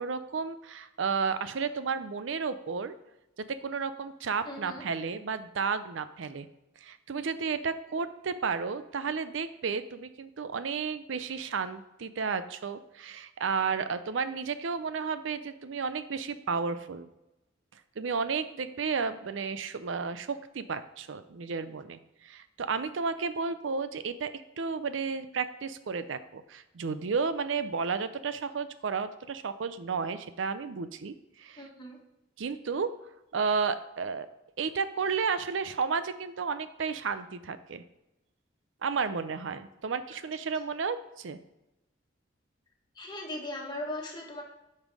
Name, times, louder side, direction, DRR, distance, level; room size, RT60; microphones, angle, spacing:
voice 1, 0.0-2.9 3.6-6.5 6.8-17.1 18.0-24.3 24.6-31.6 32.4-32.9 33.3-34.3 34.6-37.8 38.8-41.4, right 5 dB, 75° right, 12 dB, 0.5 m, -32 dB
voice 2, 4.4-4.8 31.6-32.0 42.9-44.4, left 1 dB, 25° left, 0 dB, 1.6 m, -38 dB
9.1 x 5.5 x 4.7 m, 0.93 s
head